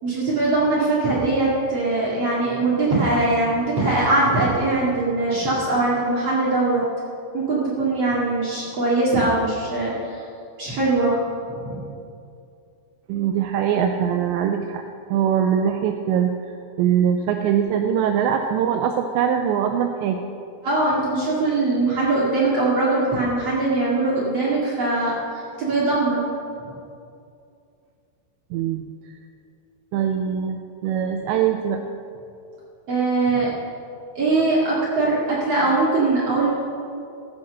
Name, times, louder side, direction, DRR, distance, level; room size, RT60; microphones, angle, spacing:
voice 1, 0.0-6.8 7.3-10.2 10.6-11.2 11.6-11.8 20.6-26.3 32.9-33.5 34.2-36.5, right 2 dB, 50° right, -6 dB, 2.0 m, -21 dB
voice 2, 13.1-14.8 15.1-16.3 16.8-20.3 28.5-28.8 29.9-31.8, right 8 dB, 90° right, 5 dB, 2.5 m, -22 dB
14.5 x 7.7 x 6.4 m, 2.5 s
omnidirectional pair, 5.7 m